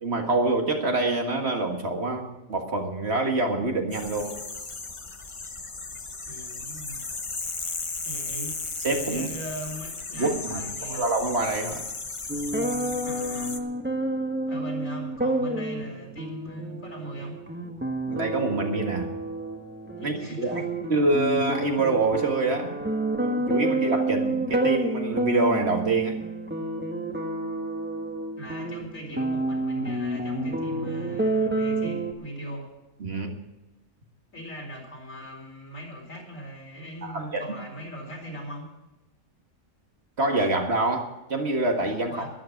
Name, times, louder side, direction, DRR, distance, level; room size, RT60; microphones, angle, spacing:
voice 1, 0.0-4.4 8.8-9.3 10.2-11.8 18.1-19.1 20.0-20.6 20.9-22.7 23.2-26.2 33.0-33.4 37.0-37.6 40.2-42.3, right 2 dB, 50° right, 3 dB, 1.9 m, -26 dB
sound 1, 3.9-13.6, left 3 dB, 25° left, 0.9 m, -35 dB
voice 2, 6.3-7.0 8.0-8.6 9.1-11.0 13.0-13.6 14.5-17.4 20.0-20.7 28.4-32.7 34.3-38.7 42.0-42.3, right 1 dB, 70° left, -1 dB, 4.8 m, -39 dB
sound 2, 12.3-32.1, right 2 dB, 10° right, 1.4 m, -29 dB
12.5 x 11.5 x 7.2 m, 1.0 s
omnidirectional pair, 1.4 m